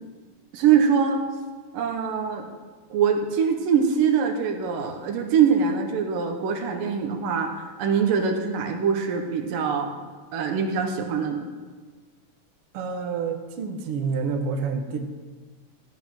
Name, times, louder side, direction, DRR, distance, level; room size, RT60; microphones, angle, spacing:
voice 1, 0.5-1.2 1.7-2.5 2.9-9.9 10.3-11.4, right 7 dB, 80° right, 3 dB, 2.9 m, -23 dB
voice 2, 12.7-15.0, right 5 dB, 60° right, 4 dB, 1.6 m, -28 dB
15.0 x 9.6 x 6.0 m, 1.4 s
omnidirectional pair, 3.9 m